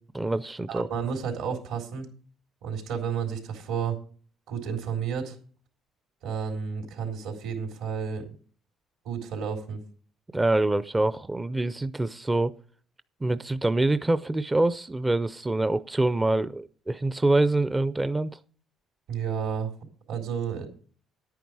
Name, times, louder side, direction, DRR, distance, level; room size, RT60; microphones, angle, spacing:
voice 1, 0.1-0.9 10.3-12.5 13.2-18.3, right 2 dB, 15° right, 0.5 m, -25 dB
voice 2, 0.7-2.1 2.6-4.0 4.5-5.4 6.2-8.3 9.0-9.8 19.1-19.7 20.1-20.7, right 7 dB, 85° right, 3.6 m, -31 dB
10.5 x 9.3 x 4.7 m
cardioid pair, 110°, 0 cm